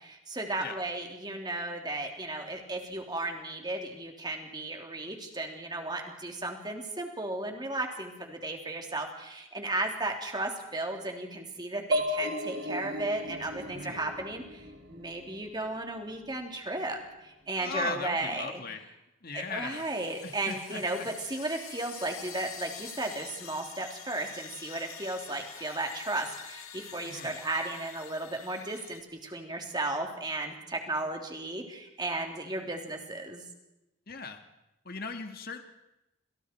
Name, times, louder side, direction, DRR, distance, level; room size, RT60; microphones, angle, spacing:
voice 1, 0.0-18.6 19.3-33.4, right 2 dB, 20° right, 2 dB, 3.3 m, -35 dB
sound 1, 11.9-15.6, left 1 dB, 50° right, 3.3 m, -34 dB
voice 2, 17.6-18.9 19.2-19.9 20.2-21.1 27.0-27.3 34.1-34.4 34.9-35.6, left 4 dB, 45° left, 6 dB, 1.9 m, -38 dB
sound 2, 19.7-29.0, left 9 dB, 90° left, 2.1 m, -47 dB
29.5 x 27.5 x 4.6 m, 0.93 s
head